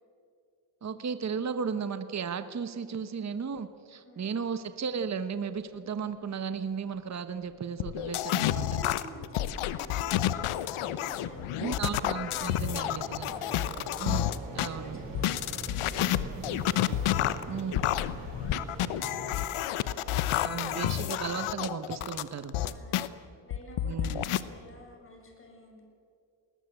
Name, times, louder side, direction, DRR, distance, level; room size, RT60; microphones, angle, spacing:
voice 1, 0.8-8.8 11.6-13.3 14.0-15.0 17.5-17.8 20.4-22.6 23.8-24.3, right 6 dB, 35° right, 11 dB, 1.1 m, -35 dB
sound 1, 4.9-5.0 5.4-19.4, right 3 dB, 85° right, 6.6 m, -45 dB
sound 2, 7.8-14.7 15.1-23.1 23.5-24.4, left 12 dB, 85° left, 1.0 m, -30 dB
voice 2, 8.3-13.8 14.3-21.0 22.7-25.8, equal, 25° left, 1 dB, 6.9 m, -51 dB
20.0 x 19.5 x 8.2 m, 2.4 s
cardioid pair, 95°, 48 cm